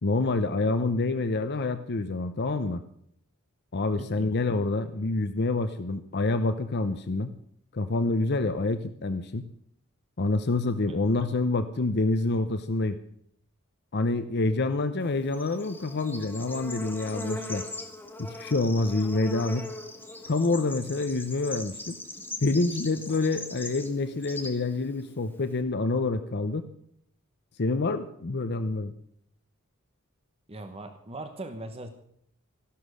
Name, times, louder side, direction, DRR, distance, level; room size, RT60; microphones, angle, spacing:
voice 1, 0.0-2.8 3.7-7.3 7.7-9.5 10.2-13.0 13.9-17.6 18.2-19.7 20.3-22.0 22.4-26.7 27.6-28.9, left 3 dB, 50° left, 10 dB, 0.8 m, -27 dB
voice 2, 4.0-4.3 10.9-11.0 30.5-31.9, right 2 dB, 30° right, 7 dB, 1.1 m, -39 dB
Bird / Insect, 15.0-25.6, left 2 dB, 10° left, 1.7 m, -40 dB
14.5 x 11.5 x 6.4 m, 0.68 s
head